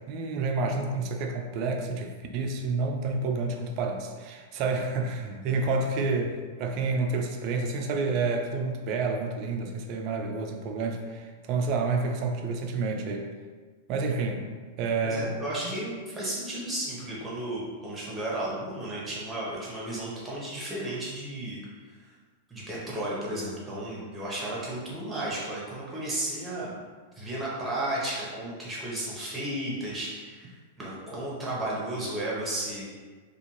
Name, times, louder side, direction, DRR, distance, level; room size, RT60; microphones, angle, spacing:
voice 1, 0.1-13.3 13.9-14.5 14.8-15.4, right 3 dB, 50° right, 3 dB, 0.4 m, -29 dB
voice 2, 15.0-21.6 21.9-22.1 22.5-26.7 27.2-32.9, right 1 dB, 15° right, -6 dB, 1.0 m, -33 dB
2.5 x 2.3 x 3.0 m, 1.5 s
hypercardioid pair, 105°, 0 cm